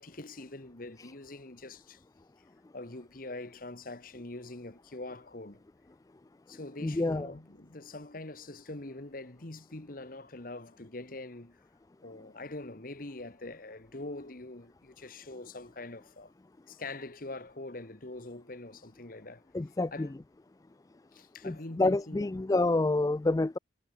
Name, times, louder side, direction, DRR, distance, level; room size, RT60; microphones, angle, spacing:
voice 1, 0.0-2.0 2.7-5.6 6.5-11.6 12.0-16.3 16.7-19.5 19.9-20.2 21.1-22.3, left 2 dB, 50° left, 1.6 m, -44 dB
voice 2, 6.8-7.3 19.5-20.1 21.4-23.6, left 2 dB, 20° left, 0.4 m, -28 dB
head